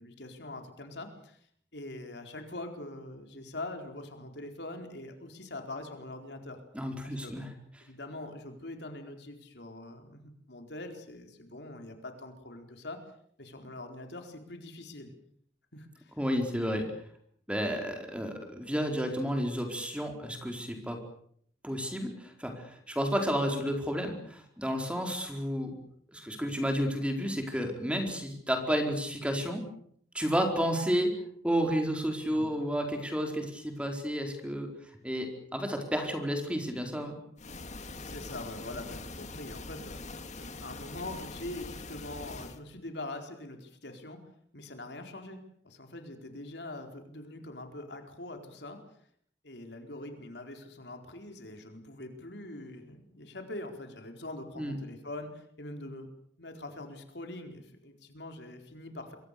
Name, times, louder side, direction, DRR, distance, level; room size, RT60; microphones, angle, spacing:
voice 1, 0.0-1.4 1.7-6.6 7.0-7.3 7.8-13.0 13.4-15.1 15.7-16.2 32.3-32.5 38.1-40.0 40.4-44.2 44.5-48.8 49.4-56.1 56.4-59.2, left 2 dB, 70° left, 5 dB, 4.4 m, -43 dB
voice 2, 6.7-7.5 16.2-16.9 17.5-21.0 21.6-25.7 26.1-29.6 30.1-31.1 31.4-34.7 35.0-37.2 54.6-54.8, equal, 5° right, 4 dB, 4.6 m, -31 dB
sound 1, 37.4-42.6, left 3 dB, 45° left, 2.0 m, -43 dB
27.5 x 23.5 x 6.9 m, 0.65 s
head